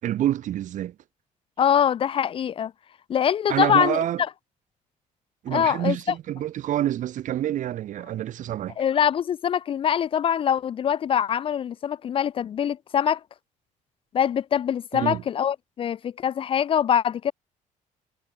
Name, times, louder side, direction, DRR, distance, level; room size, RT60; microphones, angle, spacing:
voice 1, 0.0-1.0 3.5-4.2 5.4-8.8 14.9-15.2, right 12 dB, 65° right, 5.3 m, -27 dB
voice 2, 1.6-2.7 3.1-4.0 5.5-6.0 8.8-13.2 14.1-17.3, left 9 dB, 40° left, 0.6 m, -23 dB
cardioid pair, 145°, 14 cm